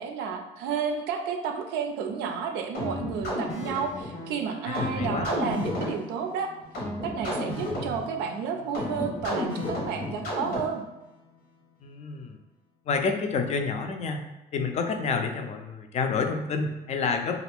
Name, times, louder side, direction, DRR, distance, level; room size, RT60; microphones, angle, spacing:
voice 1, 0.0-6.5 7.0-10.8, right 6 dB, 85° right, 4 dB, 0.4 m, -31 dB
sound 1, 2.7-11.0, left 1 dB, 80° left, 1.1 m, -33 dB
voice 2, 4.7-5.3 11.8-12.4 12.9-14.2 14.5-17.4, left 5 dB, 40° left, 5 dB, 0.4 m, -29 dB
2.5 x 2.4 x 3.4 m, 0.97 s
cardioid pair, 110°, 17 cm